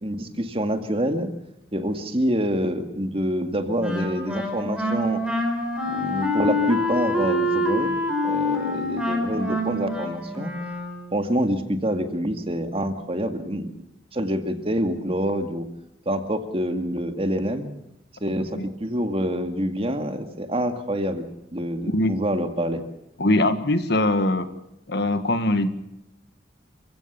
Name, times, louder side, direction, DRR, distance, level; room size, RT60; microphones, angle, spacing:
voice 1, 0.0-1.3 1.7-5.2 5.9-8.0 8.2-10.5 11.1-13.7 14.1-15.7 16.1-17.7 18.2-21.2 21.5-22.8, equal, 30° right, 7 dB, 2.2 m, -26 dB
Wind instrument woodwind instrument, 3.8-11.2, left 1 dB, 5° right, 4.6 m, -26 dB
voice 2, 23.2-24.5 24.9-25.7, left 1 dB, 60° left, 10 dB, 1.7 m, -22 dB
29.5 x 16.0 x 7.1 m, 0.87 s
head